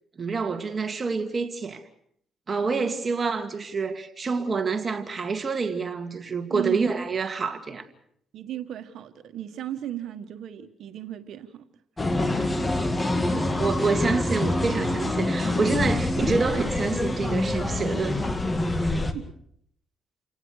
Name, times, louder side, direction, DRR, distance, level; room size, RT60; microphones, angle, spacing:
voice 1, 0.2-1.8 2.5-7.9 13.3-18.3, right 4 dB, 35° right, 2.4 m, -27 dB
voice 2, 8.3-11.6 19.1-19.2, right 11 dB, 70° right, 1.5 m, -36 dB
sound 1, 12.0-19.1, left 2 dB, 20° left, 2.3 m, -26 dB
29.5 x 18.0 x 6.5 m
cardioid pair, 90°, 0 cm